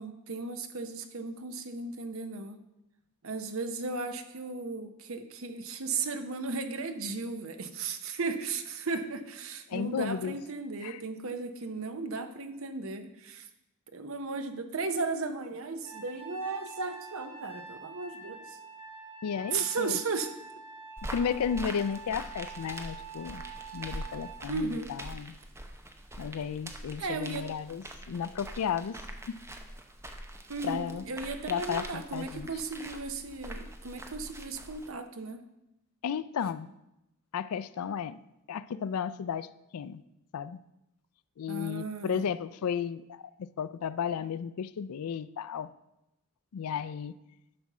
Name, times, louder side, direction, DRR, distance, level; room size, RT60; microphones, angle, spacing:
voice 1, 0.0-2.6 3.2-13.5 13.9-18.6 19.5-20.3 24.5-24.9 27.0-27.5 30.5-35.4 41.5-42.3, right 4 dB, 65° right, 8 dB, 0.8 m, -35 dB
voice 2, 9.7-10.3 10.8-11.0 19.2-20.0 21.0-23.4 23.7-25.4 26.2-29.0 29.3-29.4 30.6-31.1 31.5-32.5 36.0-36.7 37.3-38.2 38.5-40.0 40.3-40.6 41.4-45.7 46.5-47.2, left 7 dB, 80° left, 16 dB, 0.4 m, -34 dB
Trumpet, 15.8-24.4, right 4 dB, 80° right, 2.4 m, -46 dB
sound 1, 21.0-34.9, right 1 dB, 10° right, 0.7 m, -44 dB
11.0 x 4.2 x 6.0 m, 0.90 s
head